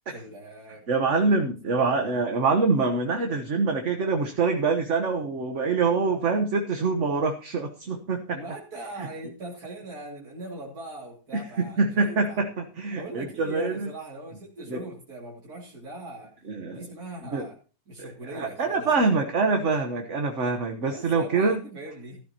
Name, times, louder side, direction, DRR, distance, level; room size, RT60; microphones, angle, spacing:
voice 1, 0.1-1.4 8.3-12.4 12.9-16.3 16.7-17.6 17.9-19.1 20.8-22.2, right 2 dB, 75° right, -4 dB, 3.2 m, -41 dB
voice 2, 0.9-8.4 11.3-13.9 14.7-14.8 16.5-16.8 17.3-17.5 18.0-21.6, right 4 dB, 50° right, 5 dB, 1.5 m, -25 dB
15.5 x 13.0 x 2.9 m, 0.34 s
omnidirectional pair, 1.6 m